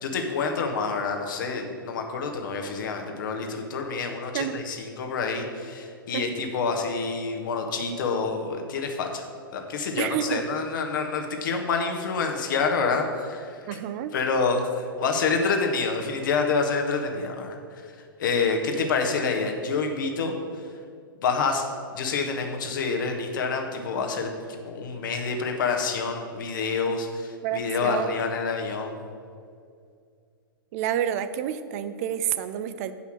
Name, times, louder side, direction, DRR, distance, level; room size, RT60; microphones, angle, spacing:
voice 1, 0.0-9.3 9.5-13.7 14.1-17.6 18.2-20.3 21.2-21.6 21.9-24.3 24.7-29.0, left 4 dB, 60° left, 3 dB, 1.4 m, -27 dB
voice 2, 10.0-10.4 13.7-14.1 27.4-28.2 30.7-32.9, right 10 dB, 40° right, 12 dB, 0.4 m, -29 dB
8.3 x 5.6 x 6.2 m, 2.2 s
figure-of-eight pair, 110°, 12 cm